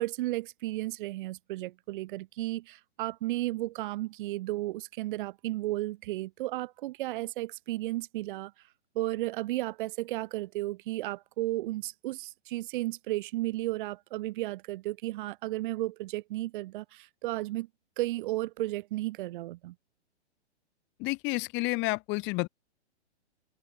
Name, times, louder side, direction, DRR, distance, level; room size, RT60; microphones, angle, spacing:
voice 1, 0.0-8.5 9.0-17.7 18.0-19.7, right 17 dB, 45° right, 4.0 m, -34 dB
voice 2, 21.0-22.5, left 25 dB, 35° left, 5.0 m, -30 dB
hypercardioid pair, 130°, 34 cm